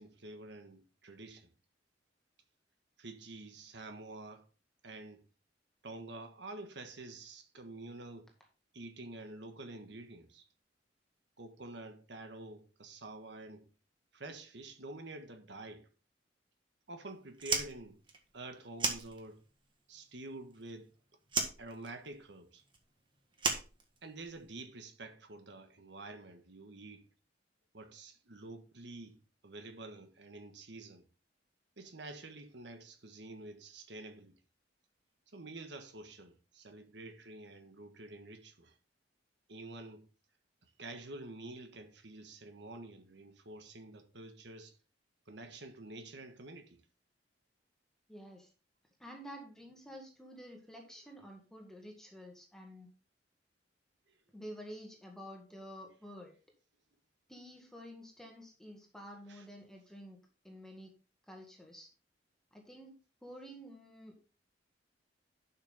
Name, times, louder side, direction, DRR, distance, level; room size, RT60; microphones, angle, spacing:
voice 1, 0.0-1.5 3.0-4.5 4.8-5.2 5.8-8.3 8.7-10.5 11.4-13.7 14.1-15.9 16.9-18.0 18.3-19.4 19.9-20.9 21.6-22.6 24.0-27.1 27.7-31.1 31.8-34.3 35.3-38.8 39.5-40.1 40.8-44.7 45.3-46.8 59.3-59.4, right 2 dB, 65° right, 1.5 m, -48 dB
Fire, 17.3-19.7 19.9-20.9 21.3-24.4, right 4 dB, 25° right, 1.6 m, -36 dB
voice 2, 48.1-48.5 49.0-52.9 54.3-56.4 57.3-60.2 60.4-60.9 61.3-61.9 62.5-63.0 63.2-64.2, equal, 5° left, 1.8 m, -50 dB
11.0 x 5.9 x 3.6 m
head